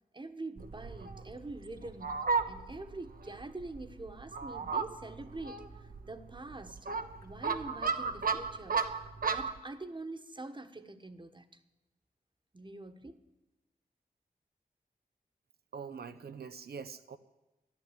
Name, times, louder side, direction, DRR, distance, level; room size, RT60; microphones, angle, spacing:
voice 1, 0.1-6.9 7.2-8.8 9.3-11.6 12.5-13.2, right 2 dB, 30° right, 9 dB, 1.3 m, -45 dB
Fowl, 0.6-9.6, right 5 dB, 65° right, 1.0 m, -35 dB
voice 2, 15.7-17.2, right 6 dB, 90° right, 11 dB, 0.8 m, -44 dB
13.0 x 10.5 x 8.8 m, 1.0 s
cardioid pair, 50°, 16 cm